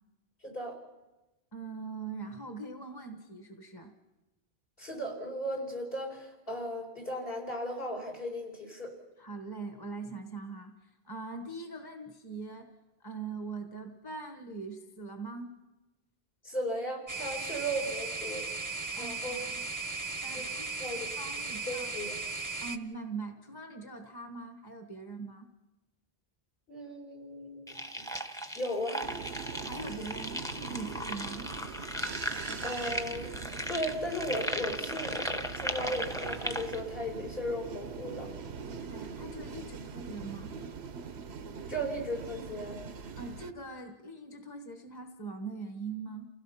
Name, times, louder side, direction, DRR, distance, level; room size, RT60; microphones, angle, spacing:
voice 1, 0.4-0.8 4.8-8.9 16.4-18.5 18.9-19.4 20.3-20.4 20.8-21.1 21.7-22.1 26.7-28.1 28.5-29.0 32.6-33.3 33.7-35.2 35.5-38.3 41.7-42.8, equal, 65° left, 0 dB, 5.0 m, -36 dB
voice 2, 1.5-3.9 9.2-12.7 13.0-15.5 18.9-19.6 20.2-20.7 21.1-21.9 22.6-25.5 29.6-31.5 38.6-40.5 43.1-46.3, right 4 dB, 20° left, 5 dB, 1.3 m, -42 dB
sound 1, 17.1-22.8, right 3 dB, 20° right, 0.8 m, -37 dB
sound 2, 27.7-36.8, equal, 5° left, 1.0 m, -37 dB
sound 3, 29.0-43.5, right 5 dB, 85° right, 1.2 m, -42 dB
29.5 x 17.0 x 5.8 m, 1.1 s
omnidirectional pair, 1.0 m